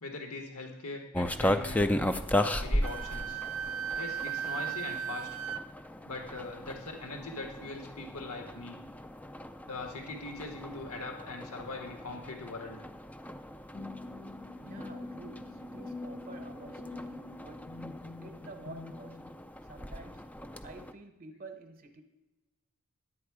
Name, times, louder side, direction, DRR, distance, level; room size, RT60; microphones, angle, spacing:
voice 1, 0.0-1.8 2.3-3.4 4.0-5.3 6.0-8.8 9.7-12.8, left 3 dB, 75° left, 1.6 m, -41 dB
sound 1, 1.1-20.9, left 1 dB, 5° left, 0.4 m, -36 dB
Wind instrument woodwind instrument, 2.8-5.6, right 8 dB, 65° right, 0.5 m, -36 dB
sound 2, 13.7-19.4, left 2 dB, 30° left, 0.8 m, -44 dB
voice 2, 14.3-17.8 18.2-19.2 19.7-20.3 20.6-22.0, right 3 dB, 40° right, 0.9 m, -50 dB
11.0 x 8.7 x 4.8 m
head